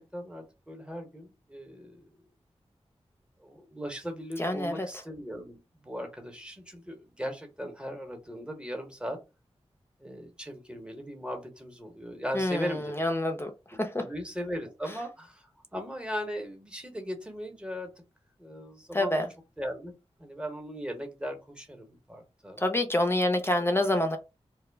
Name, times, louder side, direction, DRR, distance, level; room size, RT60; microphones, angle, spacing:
voice 1, 0.0-2.1 3.4-9.2 10.0-13.0 14.0-17.9 18.4-19.2 19.6-19.9 20.2-22.6, equal, 10° right, 4 dB, 0.9 m, -38 dB
voice 2, 4.4-4.9 12.3-13.5 13.8-14.0 18.9-19.3 22.6-24.2, left 1 dB, 20° left, 6 dB, 0.5 m, -27 dB
2.2 x 2.0 x 3.3 m, 0.27 s
cardioid pair, 50°, 11 cm